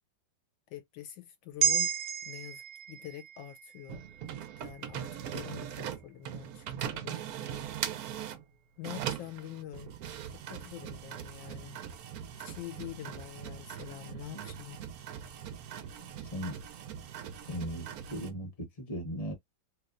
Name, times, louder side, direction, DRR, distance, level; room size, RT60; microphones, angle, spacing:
voice 1, 0.7-1.9 2.2-4.0 4.6-7.2 8.8-9.9 10.3-11.8 12.4-14.8, left 12 dB, 75° left, 1.3 m, -45 dB
sound 1, 1.6-6.1 6.5-6.6, right 7 dB, 90° right, 1.4 m, -34 dB
sound 2, 3.9-8.4 8.8-18.3, right 9 dB, 70° right, 0.9 m, -41 dB
voice 2, 13.8-14.5 15.9-16.5 17.5-19.3, equal, 25° left, 1.0 m, -39 dB
3.2 x 3.0 x 2.5 m
omnidirectional pair, 2.2 m